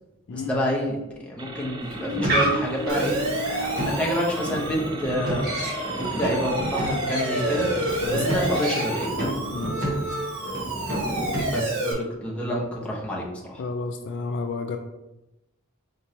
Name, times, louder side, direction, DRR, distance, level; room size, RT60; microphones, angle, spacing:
voice 1, 0.3-1.0 1.3-9.3 11.5-13.6, equal, 5° left, -4 dB, 0.8 m, -28 dB
sound 1, 1.4-9.1, right 2 dB, 20° right, 0.4 m, -40 dB
sound 2, 1.8-11.8, right 1 dB, 45° right, 1.2 m, -30 dB
Siren, 2.9-11.9, right 1 dB, 70° right, 0.8 m, -30 dB
voice 2, 13.6-14.8, left 3 dB, 55° left, 5 dB, 0.3 m, -31 dB
4.4 x 2.9 x 2.8 m, 0.96 s
head